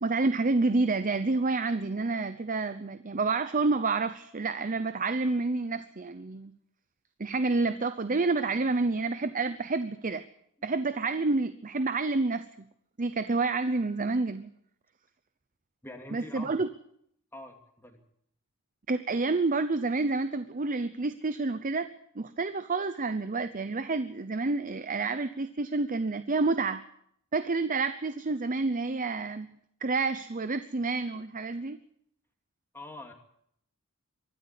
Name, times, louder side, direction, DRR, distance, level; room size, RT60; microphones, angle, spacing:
voice 1, 0.0-6.5 7.2-10.3 10.6-12.5 13.0-14.5 16.1-16.7 18.9-21.9 22.2-26.8 27.3-29.6 29.8-31.8, right 3 dB, 40° right, 12 dB, 0.8 m, -29 dB
voice 2, 15.8-16.6 17.3-18.0 32.7-33.1, left 1 dB, 10° left, 3 dB, 2.7 m, -44 dB
24.5 x 13.0 x 8.3 m, 0.71 s
head